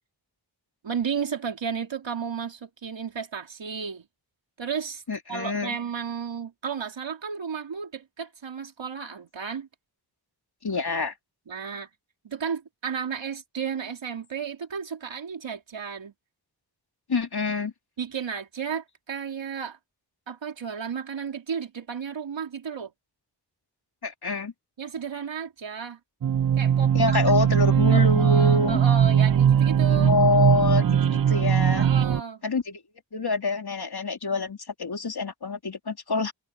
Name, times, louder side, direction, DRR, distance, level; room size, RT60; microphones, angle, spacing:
voice 1, 0.8-4.0 4.6-5.0 5.3-9.7 11.5-11.9 12.2-16.1 18.0-19.8 20.3-22.9 24.8-26.0 26.6-27.2 27.9-30.1 31.7-32.4, right 6 dB, 80° right, 3.0 m, -33 dB
voice 2, 5.1-5.8 10.6-11.1 17.1-17.7 24.0-24.5 26.9-28.8 29.8-31.9 32.4-32.8 33.1-36.3, left 4 dB, 55° left, 3.7 m, -26 dB
sound 1, 26.2-32.2, right 8 dB, 50° right, 0.6 m, -20 dB
cardioid pair, 55°, 45 cm